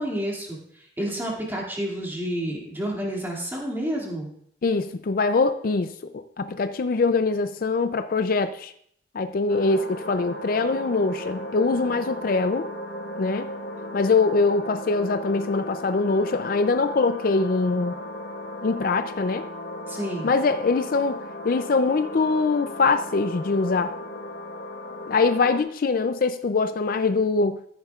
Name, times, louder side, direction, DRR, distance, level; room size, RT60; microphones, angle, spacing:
voice 1, 0.0-4.3 19.9-20.3, equal, 10° right, -2 dB, 2.3 m, -30 dB
voice 2, 4.6-8.7 9.1-12.7 13.2-13.5 13.9-18.0 18.6-19.4 20.2-23.9 25.1-27.6, left 4 dB, 50° left, 10 dB, 0.4 m, -23 dB
sound 1, 9.5-25.6, left 1 dB, 85° left, 1.3 m, -36 dB
14.0 x 10.0 x 2.4 m, 0.66 s
head